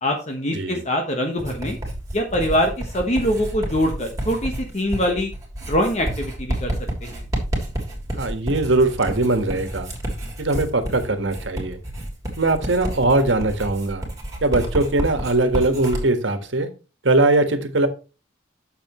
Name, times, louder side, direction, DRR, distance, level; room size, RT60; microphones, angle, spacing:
voice 1, 0.0-1.8 2.1-5.3 5.7-6.7 7.1-7.2, equal, 35° left, 3 dB, 1.2 m, -23 dB
voice 2, 0.5-0.8 8.2-9.9 10.4-11.8 12.4-14.0 14.4-16.7 17.0-17.9, right 2 dB, 75° right, 8 dB, 1.5 m, -20 dB
Writing, 1.4-16.0, right 1 dB, 20° right, 3.2 m, -30 dB
9.2 x 7.0 x 3.1 m, 0.32 s
head